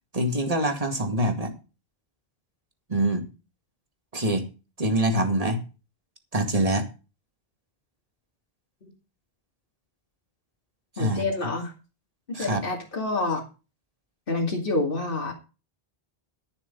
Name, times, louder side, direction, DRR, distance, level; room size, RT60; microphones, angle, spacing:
voice 1, 0.1-1.5 2.9-3.2 4.1-4.5 4.8-5.6 6.3-6.9 11.0-11.2 12.3-12.6, right 1 dB, 35° right, 5 dB, 2.2 m, -24 dB
voice 2, 11.0-11.7 12.3-13.4 14.3-15.3, left 3 dB, 60° left, -1 dB, 2.7 m, -27 dB
12.5 x 7.6 x 5.4 m, 0.31 s
omnidirectional pair, 1.0 m